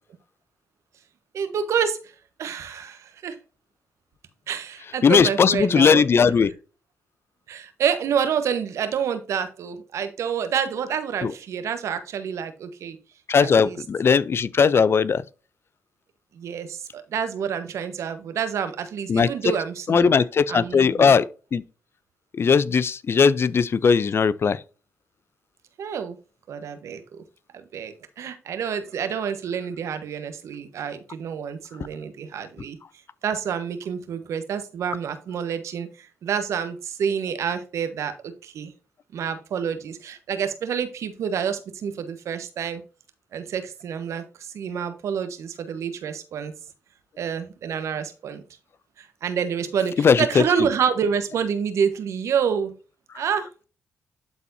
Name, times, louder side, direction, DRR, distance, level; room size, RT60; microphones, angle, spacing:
voice 1, 1.3-2.0 2.4-3.4 4.5-6.0 7.5-13.0 13.4-13.8 16.4-20.1 20.5-21.1 25.8-26.2 26.5-27.0 27.7-32.8 33.2-35.9 36.2-38.7 39.1-42.8 43.3-44.2 44.5-46.5 47.2-48.4 49.0-52.7 53.1-53.5, right 7 dB, 75° right, 1.2 m, -28 dB
voice 2, 5.0-6.5 11.2-11.3 13.3-15.2 19.1-19.3 19.9-21.6 22.3-24.6 50.0-50.4, left 6 dB, 50° left, 0.5 m, -18 dB
12.0 x 4.2 x 2.7 m
supercardioid pair, 50°, 5 cm